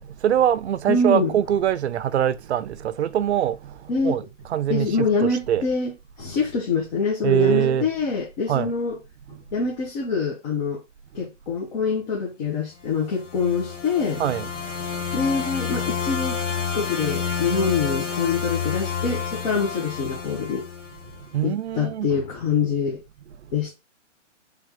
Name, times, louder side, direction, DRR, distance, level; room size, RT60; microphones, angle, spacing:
voice 1, 0.0-5.7 7.2-7.9 8.5-8.7 9.3-9.6 11.2-11.3 14.2-15.1 21.0-22.1 23.3-23.6, right 10 dB, 60° right, 0.5 m, -24 dB
voice 2, 0.9-1.3 3.9-4.2 4.7-5.9 6.2-9.0 9.5-10.8 11.1-14.2 15.1-16.4 16.7-20.7 21.4-23.0 23.5-23.8, left 4 dB, 35° left, 1.1 m, -25 dB
sound 1, 13.0-21.2, left 6 dB, 70° left, 1.5 m, -29 dB
3.4 x 3.0 x 3.7 m
hypercardioid pair, 140°, 37 cm